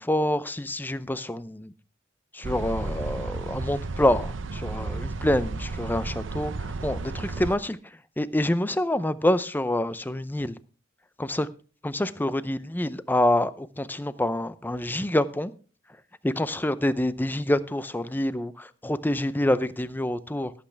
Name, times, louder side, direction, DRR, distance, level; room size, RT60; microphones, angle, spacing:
voice 1, 0.0-1.7 2.3-10.6 11.2-11.5 11.8-15.5 16.4-20.5, left 1 dB, 10° left, 0.6 m, -27 dB
sound 1, 2.4-7.6, right 3 dB, 75° right, 0.7 m, -33 dB
17.5 x 8.5 x 3.4 m
head